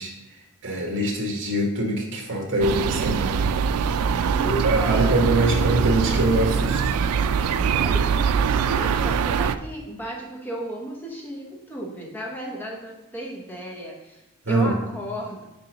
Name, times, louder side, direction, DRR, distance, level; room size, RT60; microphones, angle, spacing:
voice 1, 0.0-3.5 4.3-6.9 14.4-14.7, right 1 dB, 60° right, 1 dB, 1.5 m, -24 dB
sound 1, 2.6-9.6, right 6 dB, 80° right, 0.3 m, -23 dB
voice 2, 4.3-5.0 7.7-15.4, right 1 dB, 10° left, -2 dB, 0.8 m, -34 dB
6.0 x 4.5 x 5.1 m, 0.97 s
head